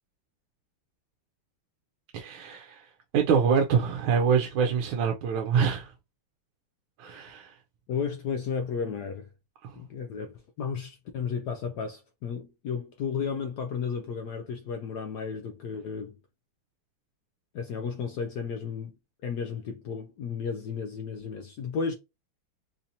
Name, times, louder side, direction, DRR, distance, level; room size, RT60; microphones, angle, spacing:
voice 1, 2.1-5.9 7.0-7.6 9.6-9.8, right 6 dB, 90° right, 1.4 m, -25 dB
voice 2, 7.9-9.3 9.7-16.2 17.5-19.0 19.2-21.9, left 6 dB, 80° left, 0.9 m, -33 dB
4.3 x 2.6 x 2.7 m
omnidirectional pair, 2.2 m